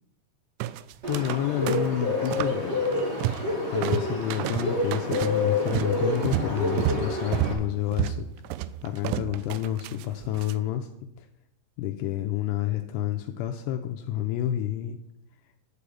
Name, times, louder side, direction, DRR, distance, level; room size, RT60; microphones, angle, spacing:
sound 1, 0.6-1.4 1.7-2.6 2.9-3.5 3.8-10.5, right 13 dB, 85° right, 2.6 m, -31 dB
Bird, 1.0-7.5, left 2 dB, 65° right, 0.6 m, -28 dB
voice 1, 1.1-2.8 3.7-8.3 8.8-10.9 11.2-11.3 11.8-15.0, left 12 dB, 80° left, 5 dB, 2.6 m, -29 dB
11.0 x 5.1 x 8.4 m, 0.82 s
omnidirectional pair, 5.1 m